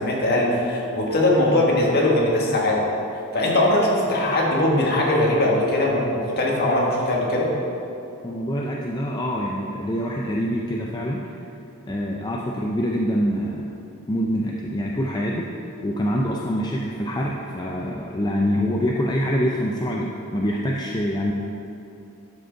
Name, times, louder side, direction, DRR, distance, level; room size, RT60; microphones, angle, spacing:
voice 1, 0.0-2.8 3.3-7.5, left 1 dB, 50° left, -3 dB, 1.5 m, -20 dB
voice 2, 8.2-11.4 11.9-13.7 14.1-15.5 15.8-21.3, equal, 20° left, -2 dB, 0.4 m, -25 dB
12.0 x 5.1 x 3.9 m, 2.8 s
head